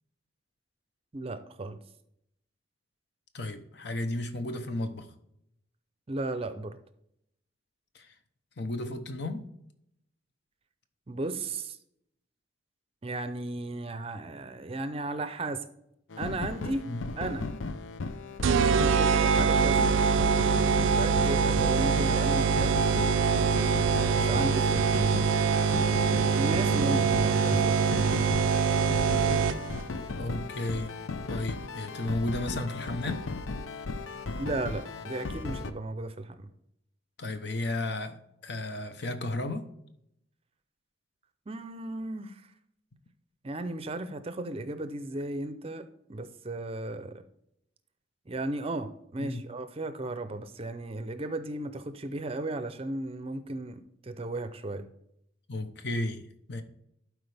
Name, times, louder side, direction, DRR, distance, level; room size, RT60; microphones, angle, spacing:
voice 1, 1.1-1.8 6.1-6.8 11.1-11.8 13.0-15.7 16.2-16.9 17.2-17.5 18.6-20.0 20.8-22.8 24.1-25.3 26.3-28.2 34.4-36.5 41.5-42.4 43.4-47.2 48.3-54.9, right 2 dB, 30° right, 10 dB, 0.5 m, -35 dB
voice 2, 3.3-5.1 7.9-8.1 8.6-9.4 16.9-17.1 30.2-30.9 31.3-33.2 37.2-39.6 49.2-49.4 55.5-56.2 56.5-56.6, left 1 dB, 60° left, 8 dB, 0.9 m, -33 dB
sound 1, 16.1-35.7, left 3 dB, 80° left, 0.6 m, -36 dB
sound 2, 18.4-29.8, right 5 dB, 80° right, 0.4 m, -24 dB
12.0 x 4.7 x 3.4 m, 0.76 s
head